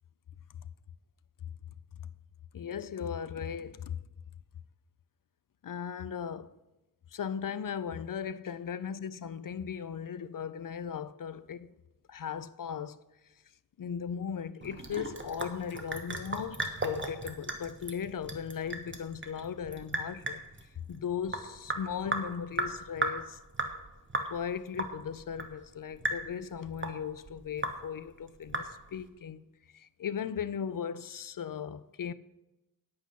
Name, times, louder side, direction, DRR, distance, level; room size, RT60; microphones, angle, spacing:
voice 1, 2.5-4.0 5.6-6.6 7.1-11.7 12.1-13.0 13.8-20.4 20.9-23.4 24.3-29.4 29.7-32.1, left 7 dB, 60° left, 0.5 m, -37 dB
Sink (filling or washing) / Drip, 14.6-29.1, right 2 dB, 30° right, 1.3 m, -37 dB
9.6 x 8.5 x 5.7 m
wide cardioid pair, 95°, 38 cm